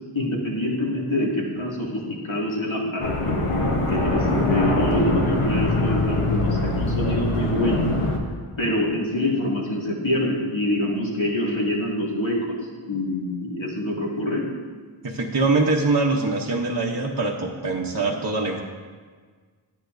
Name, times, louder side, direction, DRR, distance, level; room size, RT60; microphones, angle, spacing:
voice 1, 0.1-3.4 3.9-7.9 8.6-12.6 12.9-14.4, left 1 dB, 65° left, -4 dB, 2.1 m, -25 dB
sound 1, 3.0-8.2, left 2 dB, 85° left, 1.2 m, -23 dB
voice 2, 15.0-18.6, right 3 dB, 45° right, -1 dB, 0.8 m, -23 dB
11.5 x 10.0 x 2.6 m, 1.5 s
wide cardioid pair, 45°, 49 cm